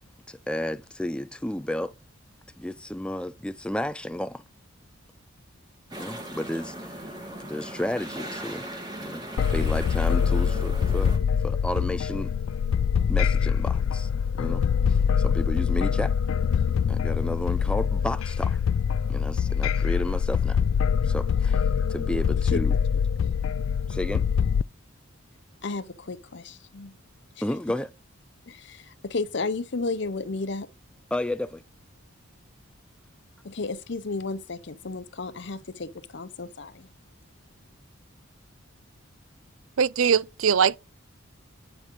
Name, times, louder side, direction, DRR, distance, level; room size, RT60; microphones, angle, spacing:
voice 1, 0.3-1.9 2.6-4.4 6.0-7.0 7.4-8.6 9.0-11.1 11.4-12.3 13.1-14.1 14.4-16.1 16.9-18.6 19.1-20.6 21.0-21.6 21.9-22.8 23.9-24.2 27.4-27.9 31.1-31.6, left 1 dB, 5° left, 0.4 m, -32 dB
sound 1, 5.9-11.2, right 1 dB, 20° right, 2.1 m, -38 dB
sound 2, 9.4-24.6, left 7 dB, 75° left, 0.3 m, -24 dB
voice 2, 25.6-26.9 28.5-30.7 33.4-36.9, left 3 dB, 55° left, 0.7 m, -33 dB
voice 3, 39.8-40.8, right 7 dB, 80° right, 0.5 m, -21 dB
8.7 x 4.6 x 5.2 m
head